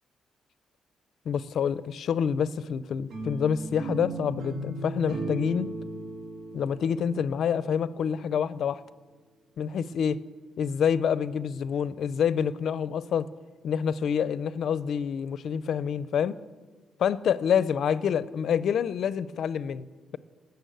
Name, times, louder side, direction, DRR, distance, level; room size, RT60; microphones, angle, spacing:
voice 1, 1.3-5.7 6.5-8.8 9.6-10.2 10.6-13.3 13.6-16.3 17.0-19.9, left 7 dB, 60° left, 17 dB, 0.5 m, -27 dB
sound 1, 3.1-8.2, right 2 dB, 80° right, 2.5 m, -37 dB
19.0 x 6.9 x 7.9 m, 1.4 s
cardioid pair, 140°, 0 cm